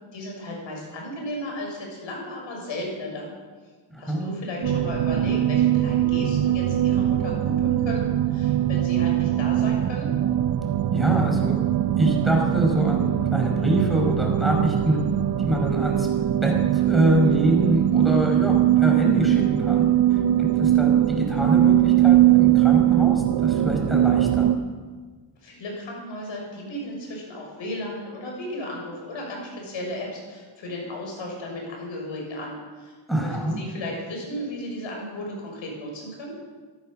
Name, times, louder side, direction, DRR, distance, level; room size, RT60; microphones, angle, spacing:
voice 1, 0.1-3.3 4.0-8.0 8.3-10.1 25.4-36.4, left 1 dB, 75° left, 0 dB, 6.6 m, -35 dB
voice 2, 3.9-4.4 10.9-11.6 12.0-15.0 15.4-16.1 16.4-24.5 33.1-33.6, right 1 dB, ahead, 0 dB, 5.3 m, -25 dB
sound 1, 4.6-24.6, right 12 dB, 55° right, 0.8 m, -21 dB
sound 2, 9.2-16.7, right 6 dB, 70° right, 3.2 m, -36 dB
15.5 x 14.0 x 6.6 m, 1.4 s
cardioid pair, 75°, 46 cm